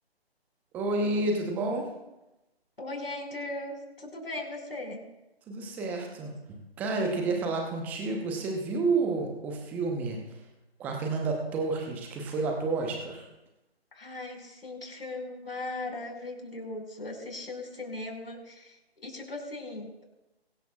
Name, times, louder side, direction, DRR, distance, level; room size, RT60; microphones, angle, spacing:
voice 1, 0.7-1.8 5.5-6.4 6.8-10.2 10.8-13.3, right 3 dB, 5° right, 2 dB, 0.9 m, -30 dB
voice 2, 2.8-5.0 13.9-19.9, left 2 dB, 65° left, 2 dB, 5.4 m, -38 dB
22.5 x 13.5 x 2.4 m, 0.98 s
figure-of-eight pair, 150°, 32 cm